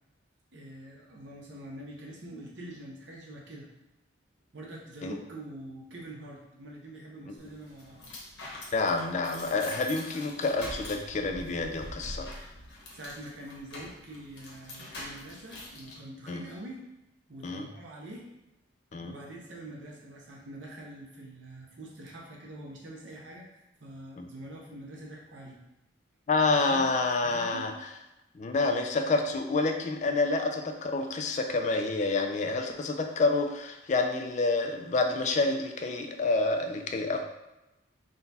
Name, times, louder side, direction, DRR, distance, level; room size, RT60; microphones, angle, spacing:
voice 1, 0.5-3.7 4.5-8.0 12.9-16.8 17.3-18.3 19.0-25.6 26.5-26.9 27.2-27.7, right 1 dB, 65° right, -2 dB, 0.9 m, -45 dB
sound 1, 7.4-16.0, left 1 dB, 60° left, 1.0 m, -44 dB
voice 2, 8.7-12.3 16.3-16.5 17.4-17.6 18.9-19.1 24.2-24.3 26.3-27.7 28.3-37.2, left 3 dB, 35° left, 5 dB, 0.3 m, -28 dB
3.9 x 2.3 x 4.0 m, 0.96 s
head